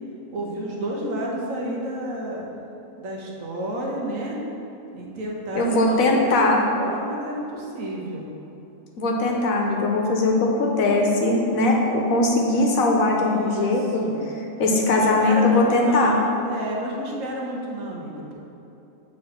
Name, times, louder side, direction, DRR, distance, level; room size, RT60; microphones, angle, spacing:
voice 1, 0.3-2.5 3.0-4.4 4.9-8.3 13.1-14.2 15.2-18.3, right 1 dB, 75° right, -2 dB, 1.4 m, -31 dB
voice 2, 5.5-6.6 9.0-14.1 14.6-16.2, left 2 dB, 85° left, 0 dB, 1.3 m, -20 dB
7.5 x 3.8 x 4.5 m, 2.9 s
omnidirectional pair, 1.4 m